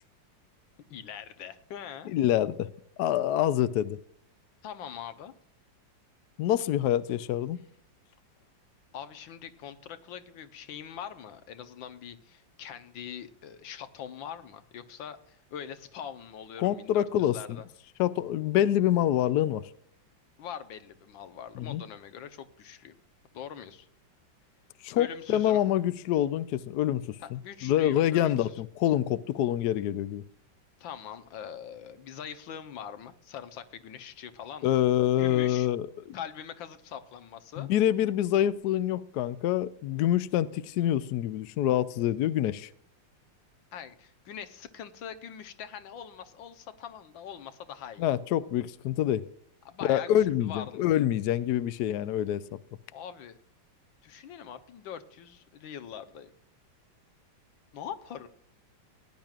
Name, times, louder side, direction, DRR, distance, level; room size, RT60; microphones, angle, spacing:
voice 1, 0.9-2.1 4.6-5.3 8.9-17.6 20.4-23.0 23.3-23.9 25.0-25.6 27.2-28.7 30.8-34.7 35.2-35.7 36.1-37.7 43.7-48.1 49.6-50.9 52.9-53.4 54.0-56.3 57.7-58.3, left 8 dB, 85° left, 1.7 m, -43 dB
voice 2, 2.1-2.7 3.0-4.0 6.4-7.6 16.6-17.4 18.0-19.6 21.6-21.8 24.8-30.2 34.6-35.8 37.6-42.7 48.0-49.3 49.9-52.4, left 12 dB, 70° left, 1.0 m, -26 dB
18.0 x 10.5 x 2.4 m
omnidirectional pair, 2.1 m